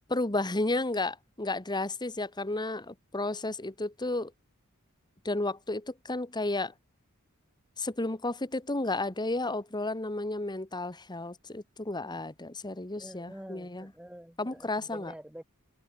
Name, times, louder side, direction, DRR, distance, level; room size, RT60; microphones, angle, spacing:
voice 1, 0.1-4.3 5.2-6.7 7.8-13.9 14.4-15.1, left 2 dB, 20° left, 1.6 m, -32 dB
voice 2, 13.0-15.4, equal, 5° right, 1.8 m, -47 dB
open air
head